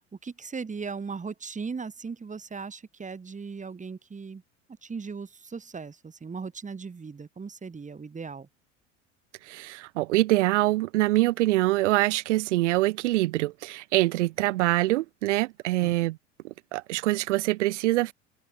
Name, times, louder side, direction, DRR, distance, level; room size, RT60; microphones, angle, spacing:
voice 1, 0.0-4.4 4.8-8.5 15.8-16.0, right 5 dB, 20° right, 4.1 m, -38 dB
voice 2, 9.4-16.2 16.4-18.1, right 18 dB, 70° right, 0.7 m, -24 dB
figure-of-eight pair, 75°, 38 cm